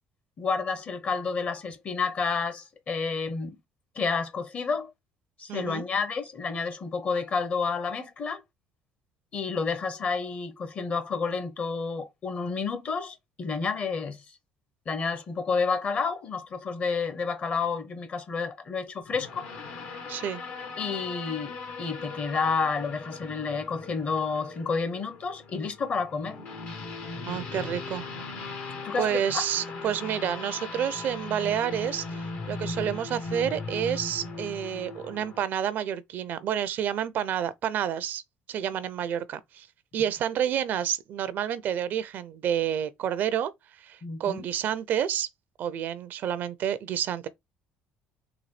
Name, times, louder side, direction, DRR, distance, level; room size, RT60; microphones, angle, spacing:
voice 1, 0.4-3.6 4.0-4.9 5.4-8.4 9.3-14.2 14.9-19.5 20.8-26.4 28.8-29.4 44.0-44.5, left 5 dB, 45° left, 0.9 m, -30 dB
voice 2, 5.5-5.8 20.1-20.4 27.3-28.1 29.0-38.2 38.5-39.7 39.9-43.5 43.8-45.3 45.6-47.3, right 9 dB, 60° right, 0.4 m, -29 dB
sound 1, 19.1-35.4, left 3 dB, 65° left, 1.2 m, -38 dB
4.0 x 2.3 x 3.2 m
supercardioid pair, 80°, 4 cm